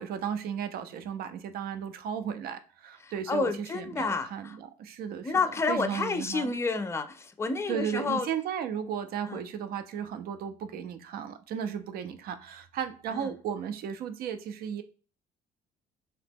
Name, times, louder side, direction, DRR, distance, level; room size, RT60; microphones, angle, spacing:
voice 1, 0.0-5.4 5.7-6.5 7.7-14.8, right 8 dB, 65° right, 0.4 m, -35 dB
voice 2, 3.0-4.6 5.2-8.3 9.3-9.4 13.1-13.3, left 4 dB, 15° left, 0.3 m, -30 dB
2.8 x 2.1 x 3.3 m
cardioid pair, 110°, 17 cm